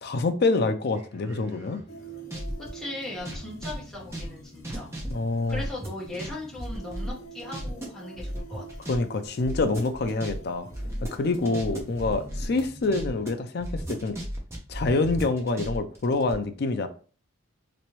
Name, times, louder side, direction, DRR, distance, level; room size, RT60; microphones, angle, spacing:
voice 1, 0.0-1.8 5.1-5.6 8.9-10.7 11.1-14.2 14.7-16.9, left 3 dB, 50° left, 0.4 m, -26 dB
sound 1, 0.9-2.7 3.2-6.3 6.6-7.8 8.2-9.0 9.2-13.3 13.6-16.3, equal, 15° right, 0.7 m, -35 dB
sound 2, 1.9-13.4, right 2 dB, 80° left, 0.8 m, -46 dB
voice 2, 2.7-4.9 5.5-8.8 11.4-11.7, left 1 dB, 5° left, 1.4 m, -38 dB
3.3 x 3.0 x 3.0 m
head